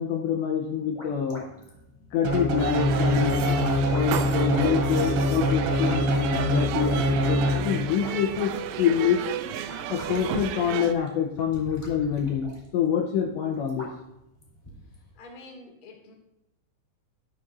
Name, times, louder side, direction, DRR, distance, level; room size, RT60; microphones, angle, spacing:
voice 1, 0.0-1.4 2.1-9.2 9.9-13.9, left 8 dB, 75° left, 2 dB, 2.8 m, -26 dB
sound 1, 0.5-15.1, equal, 5° left, 2.8 m, -47 dB
sound 2, 2.2-8.0, equal, 65° right, 4.5 m, -24 dB
sound 3, 2.6-10.9, right 9 dB, 85° right, 3.4 m, -33 dB
voice 2, 15.1-16.1, left 2 dB, 40° left, 1 dB, 1.4 m, -47 dB
12.5 x 12.5 x 2.7 m, 0.89 s
omnidirectional pair, 5.9 m